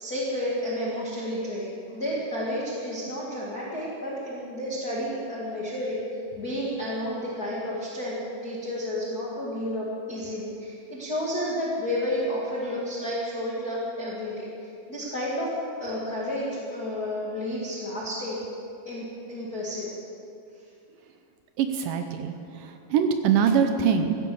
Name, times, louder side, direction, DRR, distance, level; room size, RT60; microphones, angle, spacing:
voice 1, 0.0-6.0 6.4-18.4 18.9-20.0 22.6-22.7, left 1 dB, 30° left, -7 dB, 1.9 m, -31 dB
voice 2, 21.6-24.2, right 7 dB, 75° right, 7 dB, 2.1 m, -24 dB
15.5 x 10.5 x 7.1 m, 2.6 s
omnidirectional pair, 4.5 m